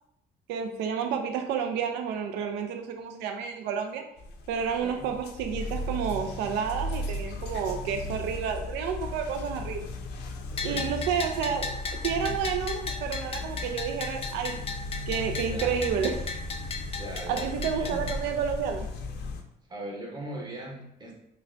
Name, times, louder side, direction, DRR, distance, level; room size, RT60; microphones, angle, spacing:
voice 1, 0.5-4.1 4.5-9.9 10.6-11.8 12.0-14.6 15.1-16.4 17.3-18.9, right 7 dB, 85° right, 4 dB, 0.4 m, -30 dB
sound 1, 4.2-19.4, left 2 dB, 80° left, 0.6 m, -36 dB
voice 2, 10.5-10.9 15.5-15.7 16.9-18.1 19.7-21.1, right 1 dB, 25° right, -1 dB, 0.9 m, -40 dB
Bell, 10.6-18.2, left 4 dB, 35° left, 0.5 m, -36 dB
5.2 x 2.2 x 2.6 m, 0.80 s
cardioid pair, 110°, 17 cm